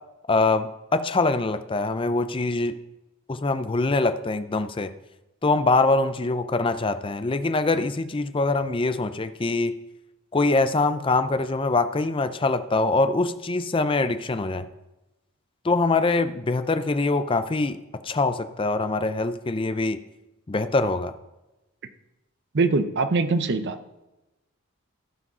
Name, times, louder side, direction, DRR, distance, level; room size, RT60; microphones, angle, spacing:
voice 1, 0.3-2.8 3.3-4.9 5.4-9.7 10.3-14.7 15.6-17.8 18.0-20.0 20.5-21.1, left 3 dB, 25° left, 11 dB, 0.5 m, -23 dB
voice 2, 22.5-23.8, right 3 dB, 50° right, 10 dB, 0.7 m, -22 dB
14.5 x 5.1 x 5.5 m, 1.0 s
head